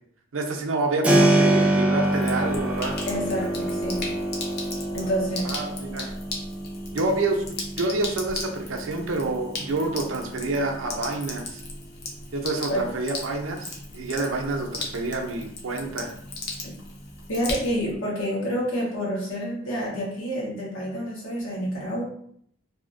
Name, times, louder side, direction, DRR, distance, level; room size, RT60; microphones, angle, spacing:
voice 1, 0.3-3.0 5.4-6.1 6.9-7.4 7.8-11.6 12.3-16.1, right 2 dB, 90° right, 2 dB, 0.5 m, -28 dB
Keyboard (musical), 1.0-11.7, right 1 dB, 5° right, 0.3 m, -27 dB
Sink (filling or washing), 2.0-18.0, left 2 dB, 55° left, 0.6 m, -37 dB
voice 2, 3.0-4.1 4.7-5.5 12.7-12.9 16.6-16.7 17.3-22.0, equal, 90° left, -4 dB, 1.1 m, -28 dB
2.7 x 2.4 x 2.5 m, 0.66 s
head